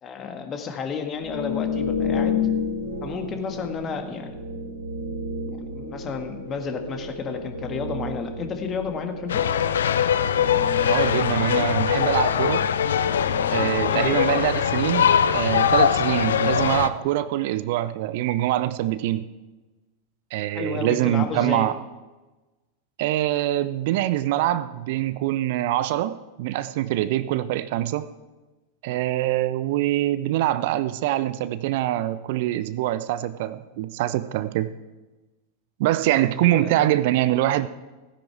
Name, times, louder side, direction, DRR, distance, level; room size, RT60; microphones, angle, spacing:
voice 1, 0.0-2.4 3.0-4.4 5.5-9.4 13.8-14.1 20.5-21.7 36.4-36.9, left 6 dB, 25° left, 6 dB, 1.7 m, -32 dB
sound 1, 1.1-16.9, left 3 dB, 85° right, 2.8 m, -32 dB
sound 2, 9.3-16.9, left 8 dB, 65° left, 0.6 m, -22 dB
voice 2, 10.9-12.7 13.5-19.3 20.3-21.8 23.0-28.1 28.8-34.7 35.8-37.7, right 14 dB, 50° right, 14 dB, 0.5 m, -24 dB
16.0 x 10.0 x 4.7 m, 1.2 s
figure-of-eight pair, 90°, 0 cm